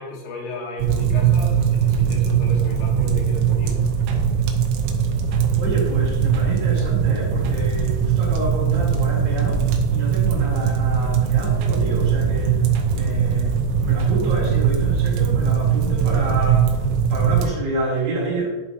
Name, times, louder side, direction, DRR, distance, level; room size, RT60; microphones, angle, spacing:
voice 1, 0.0-3.7, left 3 dB, 80° left, -1 dB, 3.7 m, -35 dB
sound 1, 0.8-17.5, right 7 dB, 85° right, 3.3 m, -20 dB
voice 2, 5.6-12.7 12.9-16.8 17.1-18.5, right 3 dB, 60° right, -6 dB, 3.9 m, -28 dB
11.5 x 4.3 x 2.8 m, 1.1 s
omnidirectional pair, 5.8 m